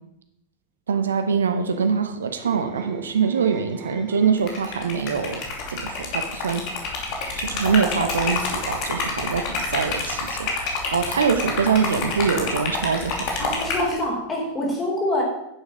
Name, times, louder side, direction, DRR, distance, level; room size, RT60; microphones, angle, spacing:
voice 1, 0.9-5.4 5.7-6.6 7.4-13.4, right 6 dB, 70° right, 9 dB, 1.2 m, -24 dB
sound 1, 1.6-5.0 5.4-5.7, right 4 dB, 30° right, 1.3 m, -41 dB
Liquid, 4.4-13.9, left 3 dB, 40° left, 2.8 m, -28 dB
voice 2, 13.4-15.2, left 1 dB, 20° left, -2 dB, 4.4 m, -25 dB
10.0 x 7.6 x 6.1 m, 0.83 s
figure-of-eight pair, 90°, 0 cm